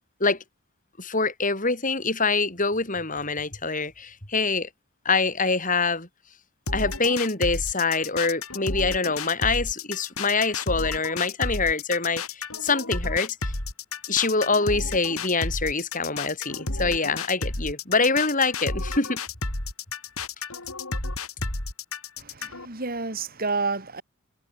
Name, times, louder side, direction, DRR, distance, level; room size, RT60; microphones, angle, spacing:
voice 1, 1.0-4.7 5.0-6.1 6.7-13.5 14.1-19.2, left 4 dB, 35° left, 6.7 m, -25 dB
sound 1, 6.7-22.7, left 3 dB, 80° left, 5.3 m, -32 dB
voice 2, 22.2-24.0, right 4 dB, 45° right, 3.4 m, -30 dB
head